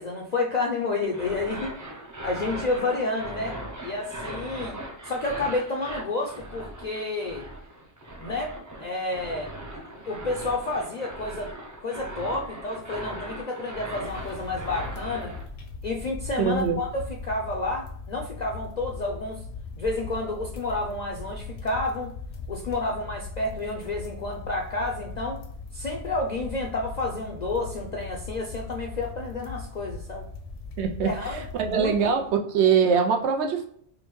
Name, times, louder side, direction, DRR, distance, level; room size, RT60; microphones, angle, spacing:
voice 1, 0.0-1.8 2.2-3.6 3.8-7.5 8.2-8.5 8.8-9.5 10.1-11.5 11.8-15.4 15.8-19.5 19.8-22.1 22.5-25.4 25.7-30.3 31.0-32.0, left 2 dB, 55° left, 1 dB, 0.5 m, -30 dB
sound 1, 1.0-15.4, right 1 dB, 25° right, 0.4 m, -39 dB
sound 2, 14.0-32.4, left 3 dB, 75° left, 1.0 m, -39 dB
voice 2, 16.4-16.8 30.8-33.7, right 6 dB, 85° right, 4 dB, 0.9 m, -23 dB
4.9 x 2.1 x 3.1 m, 0.63 s
omnidirectional pair, 1.1 m